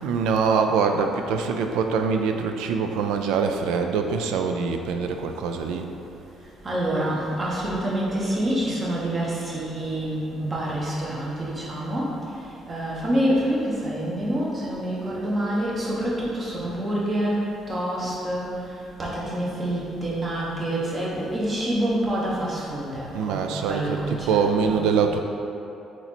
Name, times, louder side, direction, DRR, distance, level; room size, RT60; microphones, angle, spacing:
voice 1, 0.0-5.9 23.1-25.2, right 5 dB, 90° right, 5 dB, 0.3 m, -24 dB
voice 2, 6.6-12.1 12.7-18.5 19.0-24.8, right 1 dB, 30° right, -5 dB, 1.1 m, -27 dB
4.0 x 3.0 x 4.2 m, 2.8 s
cardioid pair, 95°, 0 cm